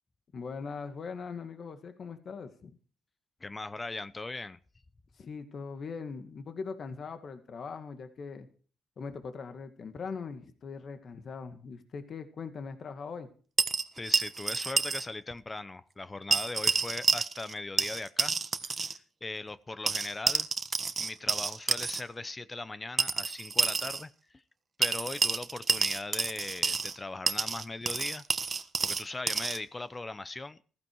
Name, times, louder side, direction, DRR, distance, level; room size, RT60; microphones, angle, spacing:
voice 1, 0.3-2.8 5.2-8.5 9.0-13.3, left 5 dB, 50° left, 8 dB, 2.0 m, -41 dB
voice 2, 3.4-4.6 13.9-18.3 18.7-20.5 21.0-24.4 24.8-28.2 28.8-30.6, left 3 dB, 20° left, 15 dB, 0.8 m, -39 dB
sound 1, 13.6-15.1 15.3-15.4 16.3-17.5 17.8-19.0 19.9-22.0 23.0-24.0 24.8-27.0 27.3-29.6, right 5 dB, 35° right, 1.4 m, -29 dB
15.0 x 15.0 x 4.7 m, 0.41 s
cardioid pair, 90°, 0 cm